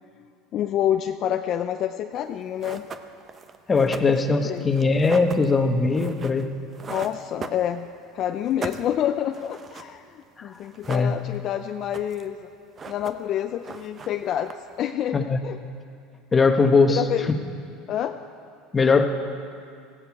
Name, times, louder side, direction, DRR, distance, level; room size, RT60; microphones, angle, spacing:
voice 1, 0.5-2.9 3.8-4.7 6.9-7.9 8.1-12.5 12.9-14.5 14.8-15.6 16.9-17.3 17.9-18.2, left 10 dB, 50° left, 6 dB, 0.5 m, -28 dB
sound 1, 2.2-2.3 2.6-8.1 8.4-10.2 10.5-11.5 11.8-12.4 12.6-13.4 13.6-14.9, right 5 dB, 30° right, 0.8 m, -39 dB
voice 2, 3.7-6.5 10.4-10.5 10.9-11.1 15.1-15.4 16.3-17.0 18.7-19.1, left 4 dB, 20° left, 6 dB, 1.2 m, -20 dB
17.5 x 15.0 x 4.7 m, 2.3 s
supercardioid pair, 110°, 0 cm